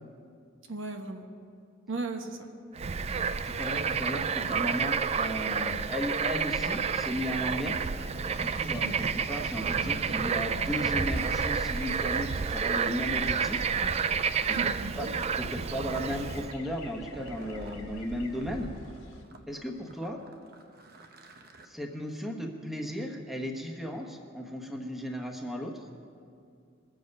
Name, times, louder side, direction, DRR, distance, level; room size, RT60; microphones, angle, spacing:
voice 1, 0.7-1.3 1.9-2.5 8.7-9.0 14.4-15.2, right 3 dB, 75° right, 4 dB, 1.1 m, -36 dB
Bird / Frog, 2.8-16.5, right 6 dB, 30° right, 0.3 m, -30 dB
voice 2, 3.4-7.8 8.3-13.7 14.5-14.7 15.0-15.1 15.3-18.7 19.5-20.2 21.6-25.9, equal, ahead, 1 dB, 1.1 m, -35 dB
sound 1, 6.6-19.2, left 1 dB, 70° left, 1.9 m, -45 dB
Fill (with liquid), 11.1-17.8 18.3-21.7, right 2 dB, 50° right, 1.0 m, -52 dB
21.5 x 7.6 x 5.4 m, 2.4 s
head